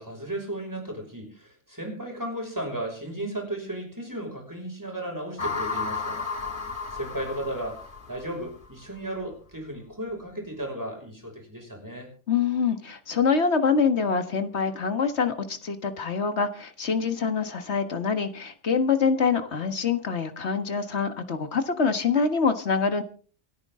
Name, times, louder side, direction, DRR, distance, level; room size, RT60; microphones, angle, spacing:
voice 1, 0.0-6.2 6.9-12.1, right 1 dB, 15° right, 1 dB, 5.8 m, -35 dB
sound 1, 5.4-8.7, left 4 dB, 45° left, 1.9 m, -33 dB
voice 2, 12.3-23.0, left 5 dB, 65° left, 8 dB, 1.8 m, -25 dB
28.0 x 9.8 x 3.8 m, 0.42 s
omnidirectional pair, 1.3 m